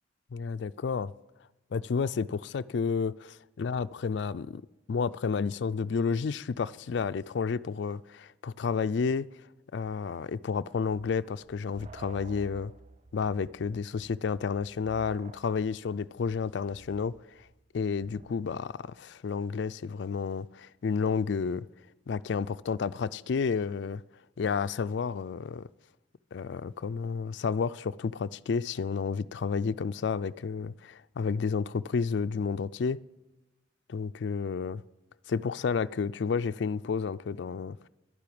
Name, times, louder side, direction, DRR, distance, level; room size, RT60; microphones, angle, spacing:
voice 1, 0.3-1.1 1.7-4.6 4.9-9.3 9.7-12.7 13.1-17.1 17.7-21.6 22.1-24.0 24.4-25.7 26.3-33.0 33.9-34.8 35.3-37.9, left 5 dB, 65° left, 0.4 m, -31 dB
sound 1, 10.9-19.0, right 3 dB, 35° right, 0.4 m, -52 dB
11.5 x 10.5 x 8.6 m
head